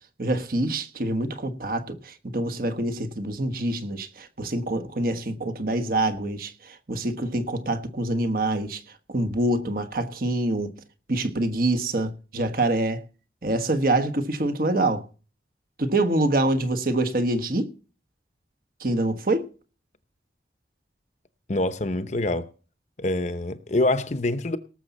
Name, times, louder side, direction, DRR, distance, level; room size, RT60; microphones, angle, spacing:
voice 1, 0.2-8.8 9.1-10.7 11.1-13.0 13.4-15.0 15.8-17.7 18.8-19.5, right 2 dB, 55° right, 1.3 m, -25 dB
voice 2, 21.5-22.5 23.0-24.6, left 2 dB, 40° left, 0.8 m, -25 dB
18.5 x 7.1 x 4.1 m
head